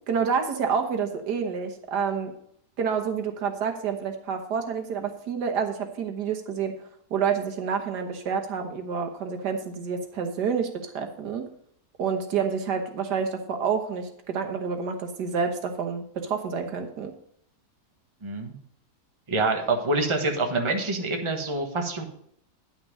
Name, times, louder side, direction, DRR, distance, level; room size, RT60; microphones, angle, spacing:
voice 1, 0.1-2.3 2.8-6.8 7.1-11.4 12.0-17.1, right 6 dB, 90° right, 5 dB, 1.8 m, -28 dB
voice 2, 18.2-18.5 19.3-22.1, right 2 dB, 20° right, 3 dB, 1.1 m, -26 dB
10.0 x 6.0 x 5.3 m, 0.67 s
omnidirectional pair, 1.7 m